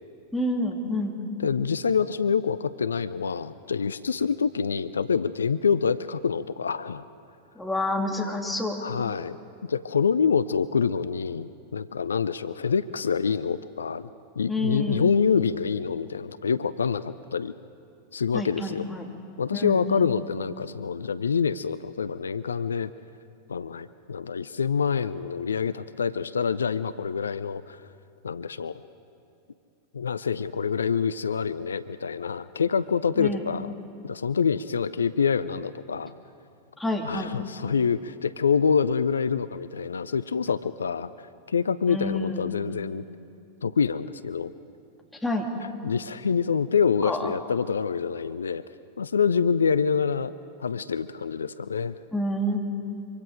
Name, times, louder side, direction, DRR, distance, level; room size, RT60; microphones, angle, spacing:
voice 1, 0.3-1.2 7.5-8.8 14.5-15.1 18.3-19.1 19.5-20.1 33.2-33.5 36.8-37.3 41.9-42.5 45.2-45.5 47.0-47.3 52.1-52.6, left 1 dB, 5° left, 0 dB, 2.8 m, -28 dB
voice 2, 1.4-7.0 8.8-9.4 9.7-14.1 14.4-17.5 18.1-18.9 19.4-22.9 23.5-27.8 28.2-28.8 29.9-33.7 34.0-36.1 37.0-43.0 43.6-44.5 45.8-48.6 49.0-50.3 50.6-52.0, left 6 dB, 70° left, 15 dB, 0.4 m, -26 dB
25.0 x 24.5 x 5.0 m, 2.6 s
figure-of-eight pair, 90°, 0 cm